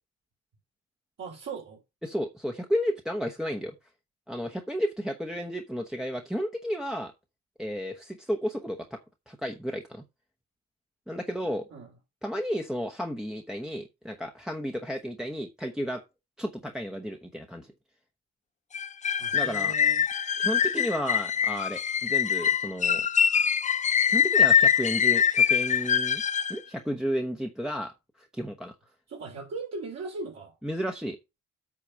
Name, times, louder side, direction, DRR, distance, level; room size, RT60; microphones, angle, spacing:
voice 1, 1.2-1.8 11.7-11.9 19.2-20.0 29.1-30.5, right 3 dB, 55° right, 3.4 m, -38 dB
voice 2, 2.0-3.7 4.3-7.1 7.6-9.0 9.3-10.0 11.1-11.6 12.2-16.0 16.4-17.7 19.3-19.7 20.4-23.1 24.1-26.2 26.5-28.7 30.6-31.2, equal, ahead, 1.0 m, -32 dB
sound 1, 18.7-26.6, left 8 dB, 25° left, 0.4 m, -24 dB
8.5 x 4.2 x 6.2 m
cardioid pair, 90°, 30 cm